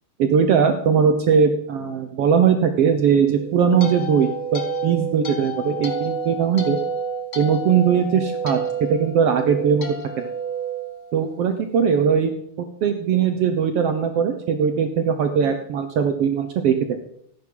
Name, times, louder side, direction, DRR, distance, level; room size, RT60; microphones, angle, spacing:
voice 1, 0.2-6.8 7.3-8.6 8.9-9.9 10.2-10.3 11.1-12.3 12.8-16.7, right 7 dB, 75° right, 7 dB, 1.4 m, -20 dB
sound 1, 3.3-11.6, right 3 dB, 40° left, 1.0 m, -30 dB
14.0 x 10.5 x 3.9 m, 0.72 s
omnidirectional pair, 3.8 m